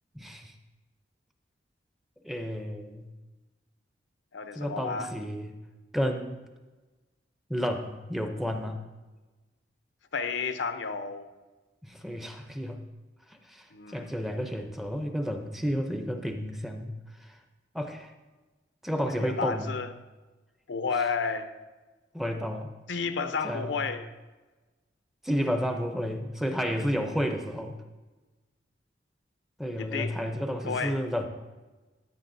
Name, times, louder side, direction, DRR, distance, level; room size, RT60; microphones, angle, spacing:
voice 1, 0.1-0.5 2.2-3.1 4.5-5.5 5.9-6.4 7.5-8.8 11.8-12.8 13.5-16.9 17.7-18.1 18.8-19.8 22.1-22.7 23.4-23.9 25.2-27.8 29.6-31.3, equal, ahead, 4 dB, 0.6 m, -31 dB
voice 2, 4.3-5.1 10.1-11.3 13.7-14.1 19.0-19.9 20.7-21.5 22.9-24.1 26.9-27.1 29.8-30.2 30.6-31.0, left 5 dB, 85° left, 9 dB, 0.7 m, -31 dB
13.5 x 9.1 x 2.6 m, 1.2 s
head